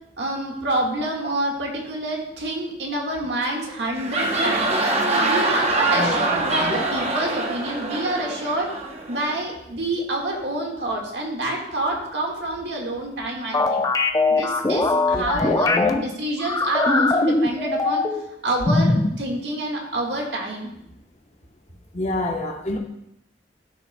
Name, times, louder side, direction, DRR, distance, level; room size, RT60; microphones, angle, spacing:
voice 1, 0.2-4.8 5.2-8.7 9.1-13.8 14.3-18.0 18.4-20.7, right 1 dB, 75° right, 0 dB, 1.6 m, -27 dB
sound 1, 3.8-9.4, right 2 dB, 40° right, 0.8 m, -24 dB
voice 2, 5.9-6.8 15.1-16.0 21.9-22.8, left 2 dB, 40° left, 2 dB, 1.0 m, -27 dB
sound 2, 13.5-15.9 16.4-18.3 18.6-19.2, left 2 dB, 20° left, 0.5 m, -21 dB
13.0 x 5.5 x 2.2 m, 0.80 s
head